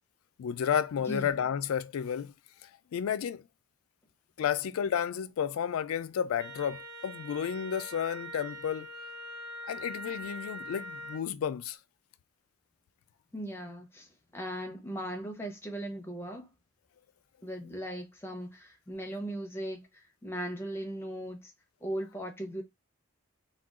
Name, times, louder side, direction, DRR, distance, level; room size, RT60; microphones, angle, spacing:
voice 1, 0.4-2.3 2.6-3.5 4.4-8.9 9.7-11.8, left 8 dB, 75° left, 0.3 m, -32 dB
Wind instrument woodwind instrument, 6.4-11.3, equal, 80° right, 1.1 m, -43 dB
voice 2, 13.3-14.1 14.3-16.5 17.4-21.5 21.8-22.6, equal, 10° left, 0.6 m, -38 dB
3.6 x 2.3 x 2.3 m
head